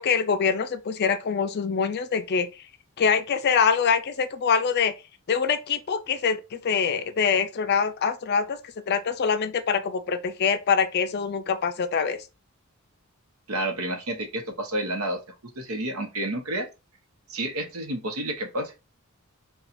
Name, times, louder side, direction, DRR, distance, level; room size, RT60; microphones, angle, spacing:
voice 1, 0.0-2.5 3.0-4.9 5.3-8.6 8.9-12.2, left 6 dB, 45° left, 0.4 m, -24 dB
voice 2, 13.5-16.7 17.3-18.8, right 1 dB, 80° right, 0.9 m, -30 dB
4.2 x 2.3 x 2.5 m
head